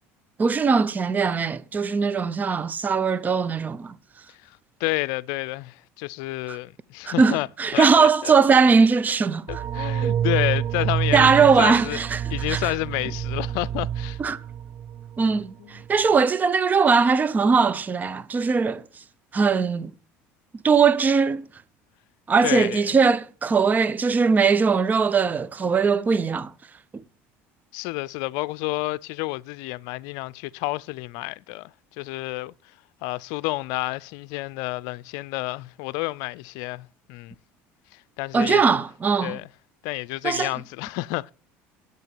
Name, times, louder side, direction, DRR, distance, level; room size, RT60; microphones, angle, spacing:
voice 1, 0.4-4.0 6.5-6.6 7.0-9.6 11.1-12.7 14.2-14.4 15.2-18.8 19.3-19.9 20.6-21.5 22.3-26.5 26.9-27.0 38.3-39.4 40.2-40.5, right 5 dB, 25° right, 0.8 m, -20 dB
voice 2, 4.4-7.5 7.7-8.4 9.5-12.0 12.3-14.2 15.6-15.7 22.4-23.0 27.7-32.5 33.0-37.3 37.9-38.6 39.2-39.5 39.8-41.3, left 21 dB, 75° left, 0.5 m, -30 dB
sound 1, 9.5-15.5 15.8-15.9, right 9 dB, 55° right, 0.8 m, -28 dB
8.1 x 8.1 x 8.9 m
supercardioid pair, 95°, 6 cm